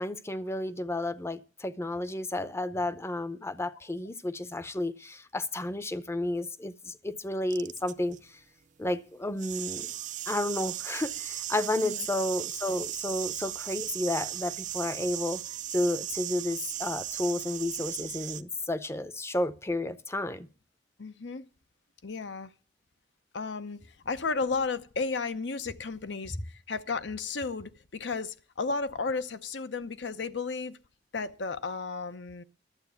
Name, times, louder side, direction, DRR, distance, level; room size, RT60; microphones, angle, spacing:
voice 1, 0.0-8.4 8.8-9.9 10.3-15.4 15.7-20.5, left 1 dB, 15° left, 0.6 m, -32 dB
sound 1, 7.5-8.2 9.3-18.4, right 12 dB, 45° right, 0.5 m, -37 dB
voice 2, 21.0-21.4 22.0-22.5 23.3-30.8 31.1-32.4, left 4 dB, 70° left, 0.7 m, -33 dB
11.5 x 7.7 x 7.0 m
head